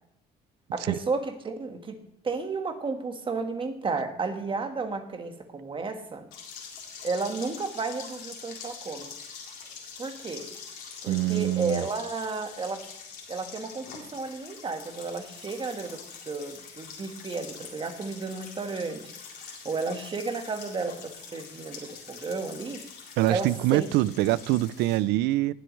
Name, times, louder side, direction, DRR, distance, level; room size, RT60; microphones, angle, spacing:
voice 1, 0.7-2.0 2.2-6.3 7.0-9.1 10.0-10.5 11.0-12.8 13.3-19.0 19.4-22.8 23.3-23.8, right 4 dB, 30° right, 1.6 m, -33 dB
sound 1, 6.3-25.0, left 6 dB, 75° left, 3.8 m, -44 dB
voice 2, 11.1-11.9 23.2-25.5, right 16 dB, 85° right, 0.5 m, -24 dB
18.5 x 7.8 x 3.2 m
cardioid pair, 110°, 17 cm